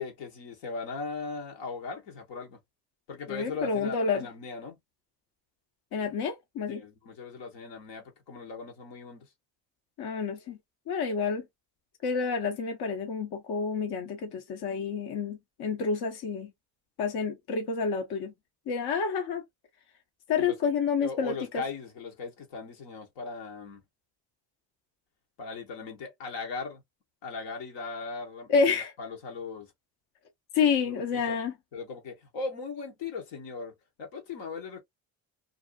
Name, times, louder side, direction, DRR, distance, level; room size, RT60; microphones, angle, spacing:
voice 1, 0.0-2.6 3.1-4.8 6.7-9.3 20.4-20.6 21.0-23.8 25.4-26.8 27.2-29.7 30.9-31.4 31.7-34.8, left 4 dB, 80° left, 1.1 m, -39 dB
voice 2, 3.3-4.3 5.9-6.8 10.0-10.6 10.9-11.4 12.0-16.5 17.0-18.3 18.7-19.4 20.3-21.6 28.5-28.9 30.5-31.5, left 5 dB, 55° left, 0.8 m, -29 dB
2.6 x 2.4 x 2.2 m
supercardioid pair, 75°, 45 cm